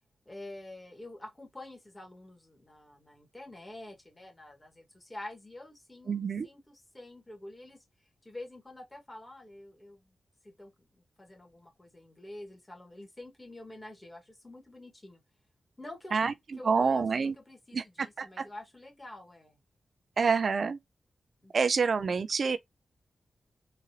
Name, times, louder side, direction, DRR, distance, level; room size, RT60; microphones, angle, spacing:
voice 1, 0.3-10.1 10.4-15.2 15.8-16.2 16.6-19.6 21.4-21.5, left 1 dB, 20° left, 1.6 m, -47 dB
voice 2, 6.1-6.5 16.1-16.3 16.6-17.3 17.7-18.5 20.2-20.8 21.5-22.6, right 5 dB, 60° right, 0.3 m, -27 dB
3.9 x 2.6 x 2.8 m
cardioid pair, 75°, 0 cm